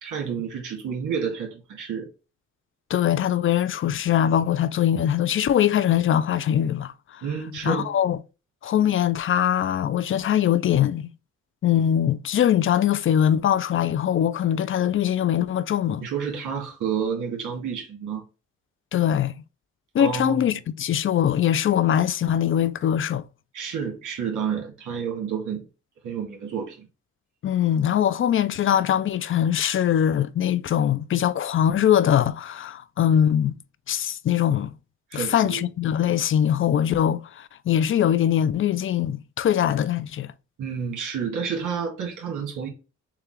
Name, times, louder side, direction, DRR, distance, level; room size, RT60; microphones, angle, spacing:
voice 1, 0.0-2.1 7.2-7.9 16.0-18.3 20.0-20.6 23.5-25.7 26.0-26.9 35.1-35.7 40.6-42.7, right 7 dB, 80° right, 1.8 m, -30 dB
voice 2, 2.9-7.2 7.6-8.2 8.6-11.1 11.6-16.0 18.9-19.4 19.9-23.2 27.4-33.6 33.9-34.7 35.1-40.3, left 10 dB, 45° left, 0.4 m, -22 dB
6.7 x 2.3 x 3.1 m
cardioid pair, 110°, 30 cm